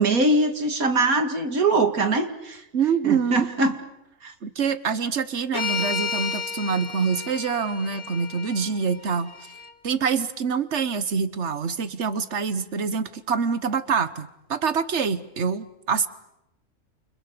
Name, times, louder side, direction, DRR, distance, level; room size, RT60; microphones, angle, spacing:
voice 1, 0.0-2.6 3.0-3.8 4.2-4.3, right 2 dB, 90° right, 6 dB, 2.7 m, -22 dB
voice 2, 2.7-3.5 4.4-9.3 9.8-16.1, right 6 dB, 55° right, 13 dB, 1.5 m, -25 dB
sound 1, 5.5-9.7, left 5 dB, 60° left, 2.2 m, -32 dB
29.5 x 28.5 x 6.8 m, 0.88 s
omnidirectional pair, 1.5 m